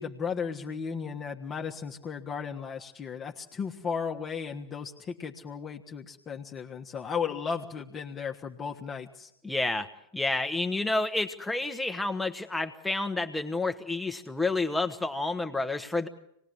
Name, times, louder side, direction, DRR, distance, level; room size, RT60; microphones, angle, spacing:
voice 1, 0.0-9.3, left 6 dB, 25° left, 1 dB, 1.4 m, -35 dB
voice 2, 9.4-16.1, left 2 dB, 5° left, 6 dB, 1.3 m, -30 dB
26.5 x 20.0 x 8.1 m, 0.77 s
figure-of-eight pair, 90°, 0 cm